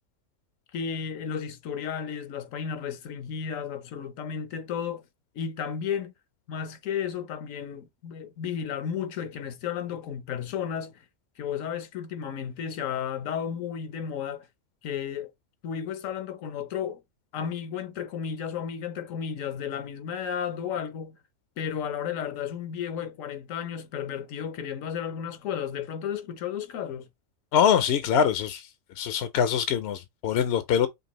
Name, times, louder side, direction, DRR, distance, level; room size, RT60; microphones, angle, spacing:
voice 1, 0.7-5.0 5.3-6.1 6.5-11.0 11.4-14.5 14.8-15.3 15.6-17.0 17.3-21.2 21.6-27.1, left 8 dB, 80° left, 1.1 m, -33 dB
voice 2, 27.5-28.7 29.0-30.9, left 8 dB, 65° left, 0.7 m, -23 dB
5.2 x 2.3 x 2.9 m
omnidirectional pair, 1.4 m